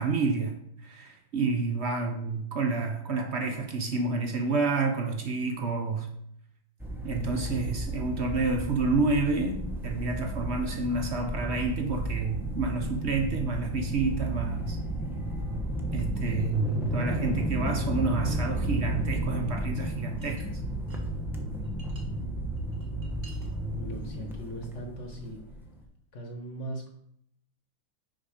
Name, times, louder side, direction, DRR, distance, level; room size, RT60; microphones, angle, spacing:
voice 1, 0.0-6.1 7.0-14.8 15.9-20.5, right 3 dB, 55° right, 0.7 m, -29 dB
sound 1, 6.8-25.8, right 1 dB, ahead, 0.5 m, -33 dB
sound 2, 19.0-19.2 20.2-21.1 21.4-22.0 22.6-23.5, right 2 dB, 25° right, 1.4 m, -53 dB
voice 2, 23.8-25.4 26.1-26.9, right 1 dB, 45° left, 1.2 m, -39 dB
6.3 x 5.6 x 4.9 m
omnidirectional pair, 2.1 m